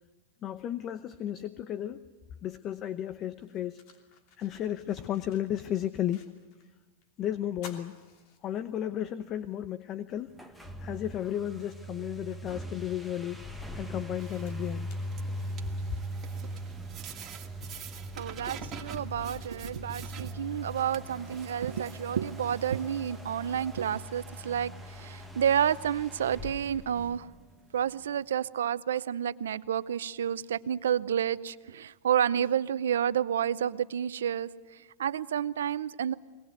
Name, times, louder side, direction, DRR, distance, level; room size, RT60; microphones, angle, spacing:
voice 1, 0.4-2.0 2.4-3.8 4.4-6.3 7.2-8.0 8.4-10.3 10.8-13.4 13.7-14.9, left 11 dB, 35° left, 13 dB, 0.8 m, -33 dB
sound 1, 3.3-6.7 7.0-7.1 7.5-9.0 9.5-9.6 11.0-11.1 11.6-15.8, left 5 dB, 55° left, 2.9 m, -55 dB
sound 2, 10.3-27.8, equal, ahead, 1.6 m, -41 dB
sound 3, 14.1-24.0, right 8 dB, 35° right, 2.1 m, -48 dB
voice 2, 18.2-27.3 27.7-36.1, right 9 dB, 80° right, 16 dB, 0.6 m, -30 dB
22.5 x 19.0 x 8.1 m, 1.3 s
hypercardioid pair, 115°, 0 cm